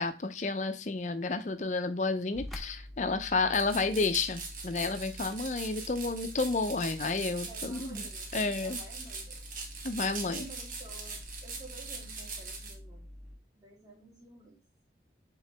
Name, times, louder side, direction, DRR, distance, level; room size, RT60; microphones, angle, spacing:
voice 1, 0.0-8.0 8.3-8.8 9.8-10.5, left 3 dB, 40° left, 9 dB, 0.5 m, -31 dB
sound 1, 2.3-13.4, left 1 dB, ahead, 0.7 m, -47 dB
sound 2, 3.5-12.7, right 4 dB, 50° right, 1.1 m, -42 dB
voice 2, 7.4-9.4 10.2-13.0 13.6-14.6, right 2 dB, 20° right, -3 dB, 2.3 m, -52 dB
7.6 x 3.8 x 3.3 m, 0.29 s
head